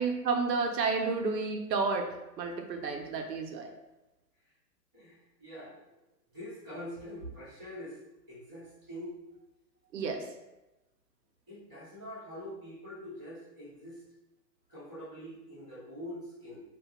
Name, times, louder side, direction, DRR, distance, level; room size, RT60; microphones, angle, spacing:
voice 1, 0.0-3.7 9.9-10.3, right 4 dB, 90° right, 3 dB, 0.7 m, -31 dB
voice 2, 4.9-5.9 6.3-8.0 8.3-9.2 11.5-14.0 14.7-16.6, equal, ahead, -34 dB, 0.4 m, -44 dB
2.3 x 2.1 x 2.8 m, 0.98 s
hypercardioid pair, 150°, 49 cm